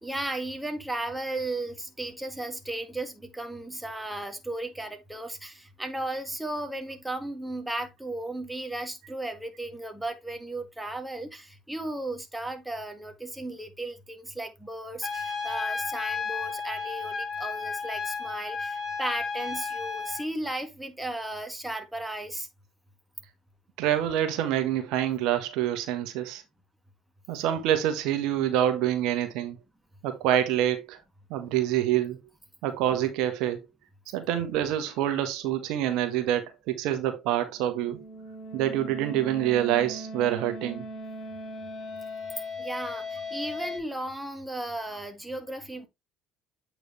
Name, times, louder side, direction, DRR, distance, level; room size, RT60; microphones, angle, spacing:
voice 1, 0.0-22.5 42.6-45.9, right 1 dB, 5° right, 1.8 m, -35 dB
Trumpet, 15.0-20.2, left 5 dB, 35° left, 3.3 m, -33 dB
voice 2, 23.8-26.4 27.3-29.6 30.0-31.0 31.3-32.2 32.6-33.6 34.1-38.0 38.5-40.8, right 11 dB, 70° right, 1.2 m, -26 dB
sound 1, 37.5-43.8, left 1 dB, 50° left, 3.1 m, -39 dB
8.3 x 4.8 x 3.2 m
hypercardioid pair, 70°, 0 cm